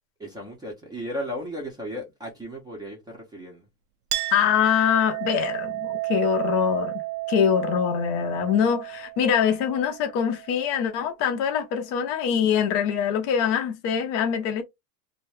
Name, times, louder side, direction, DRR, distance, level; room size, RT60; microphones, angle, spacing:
voice 1, 0.2-3.7, equal, 10° right, 0.6 m, -35 dB
Chink clink, 4.1-11.2, right 18 dB, 75° right, 0.6 m, -32 dB
voice 2, 4.3-7.0 7.3-14.6, left 8 dB, 30° left, 0.5 m, -24 dB
2.6 x 2.2 x 3.1 m
supercardioid pair, 145°, 47 cm